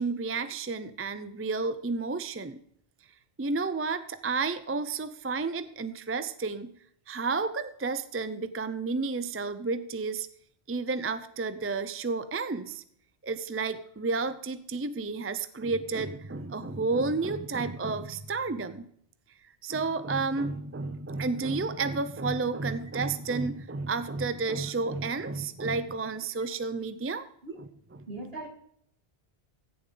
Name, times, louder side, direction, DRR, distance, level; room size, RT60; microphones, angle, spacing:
voice 1, 0.0-2.6 3.4-6.7 7.1-10.3 10.7-12.8 13.2-18.9 19.6-27.3 27.6-27.7, right 4 dB, 20° right, 12 dB, 0.4 m, -31 dB
voice 2, 28.1-28.5, right 2 dB, 60° right, 2 dB, 2.6 m, -38 dB
15.5 x 7.2 x 3.9 m, 0.68 s
omnidirectional pair, 1.1 m